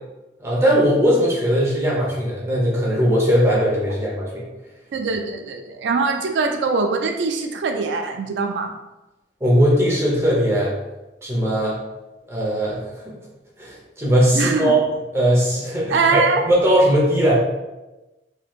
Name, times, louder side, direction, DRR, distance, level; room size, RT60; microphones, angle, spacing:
voice 1, 0.4-4.4 9.4-10.7 11.2-11.8 12.3-13.1 13.6-14.8 15.1-17.3, equal, 15° right, -5 dB, 0.8 m, -19 dB
voice 2, 4.9-8.7 14.3-14.8 15.9-16.4, right 4 dB, 85° right, 5 dB, 0.3 m, -22 dB
3.1 x 3.1 x 2.4 m, 1.0 s
head